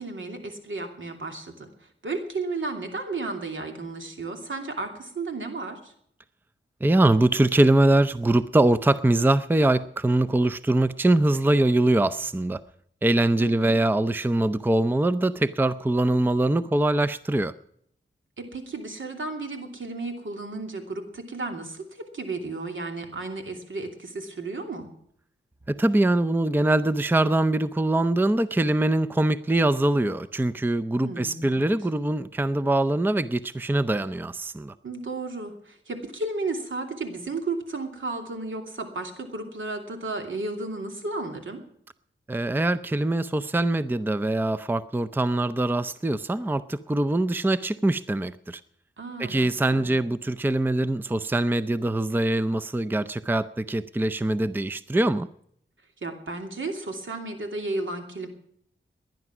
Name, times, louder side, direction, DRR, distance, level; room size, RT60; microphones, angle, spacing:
voice 1, 0.0-5.9 13.4-13.8 18.4-24.9 31.0-31.7 34.8-41.6 49.0-50.0 56.0-58.3, right 3 dB, 75° right, 4 dB, 2.8 m, -33 dB
voice 2, 6.8-12.6 13.0-17.5 25.7-34.7 42.3-48.6 49.2-55.3, right 1 dB, 10° right, 12 dB, 0.5 m, -23 dB
19.0 x 10.5 x 6.0 m, 0.68 s
wide cardioid pair, 80°, 20 cm